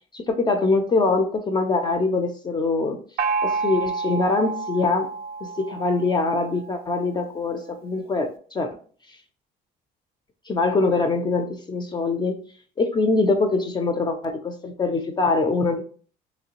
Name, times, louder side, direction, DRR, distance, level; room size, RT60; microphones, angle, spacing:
voice 1, 0.1-3.0 3.4-5.1 5.4-8.8 10.5-12.3 12.8-15.8, left 3 dB, 25° left, 6 dB, 0.4 m, -23 dB
Gong, 3.2-6.7, right 4 dB, 65° right, 0.4 m, -29 dB
3.1 x 2.9 x 2.9 m, 0.44 s
cardioid pair, 110°, 17 cm